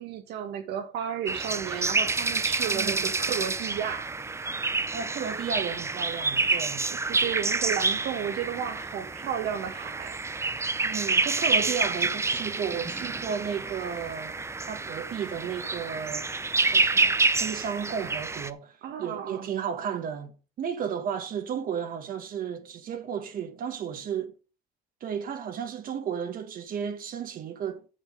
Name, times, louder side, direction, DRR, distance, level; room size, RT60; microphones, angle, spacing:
voice 1, 0.0-4.1 6.9-10.2 18.8-19.5, right 9 dB, 80° right, 1.8 m, -33 dB
sound 1, 1.3-18.5, right 3 dB, 15° right, 0.6 m, -28 dB
voice 2, 2.7-3.1 4.9-6.9 10.8-16.3 16.7-20.3 20.6-24.3 25.0-27.8, right 7 dB, 55° right, 1.2 m, -33 dB
7.7 x 5.9 x 6.6 m
cardioid pair, 110°, 17 cm